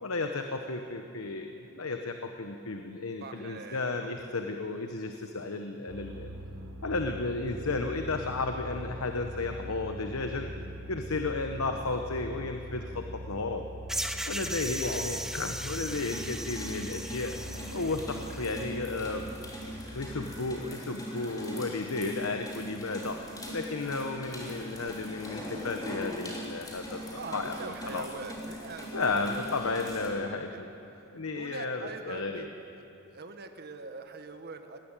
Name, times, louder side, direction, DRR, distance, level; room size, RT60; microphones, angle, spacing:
voice 1, 0.0-6.3 6.8-10.5 10.9-13.7 14.3-17.4 17.7-19.3 19.9-27.0 27.3-28.1 28.9-30.7 31.1-32.5, left 3 dB, 80° left, 5 dB, 1.0 m, -33 dB
voice 2, 3.2-4.3 14.8-15.3 27.2-30.6 31.3-32.5 33.1-34.8, right 3 dB, 50° right, 7 dB, 1.3 m, -43 dB
sound 1, 5.9-20.4, equal, 80° right, 1.1 m, -43 dB
sound 2, 13.9-18.6, right 1 dB, ahead, 0.8 m, -37 dB
sound 3, 15.8-30.1, equal, 20° left, 3.4 m, -41 dB
19.5 x 16.0 x 9.0 m, 2.9 s
head